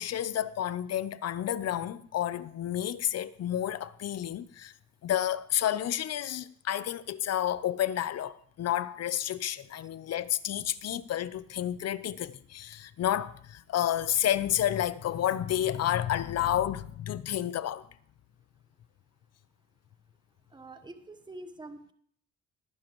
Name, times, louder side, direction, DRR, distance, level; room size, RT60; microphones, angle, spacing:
voice 1, 0.0-4.7 5.0-17.9, left 11 dB, 55° left, 0.7 m, -30 dB
voice 2, 20.5-21.9, right 2 dB, 15° right, 1.1 m, -46 dB
19.0 x 9.7 x 3.1 m
cardioid pair, 90°, 30 cm